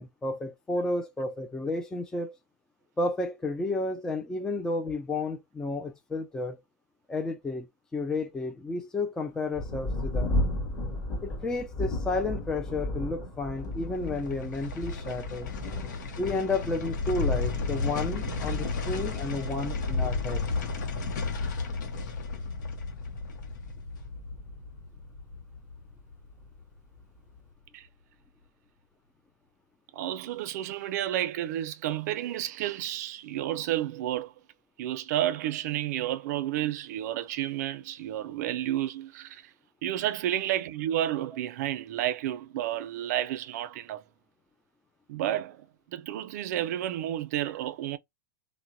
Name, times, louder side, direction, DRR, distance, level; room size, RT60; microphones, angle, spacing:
voice 1, 0.0-2.3 3.0-6.6 7.1-10.3 11.2-15.5 16.2-20.4, left 2 dB, 5° left, 0.3 m, -32 dB
Thunder, 9.5-25.6 26.4-26.5 27.0-27.4, left 1 dB, 25° left, 1.5 m, -36 dB
sound 1, 13.4-26.6 26.9-27.0, left 4 dB, 80° left, 0.7 m, -33 dB
voice 2, 29.9-34.3 34.8-39.4 39.8-44.0 45.1-48.0, right 12 dB, 65° right, 0.4 m, -31 dB
2.7 x 2.1 x 2.5 m
supercardioid pair, 150°, 10 cm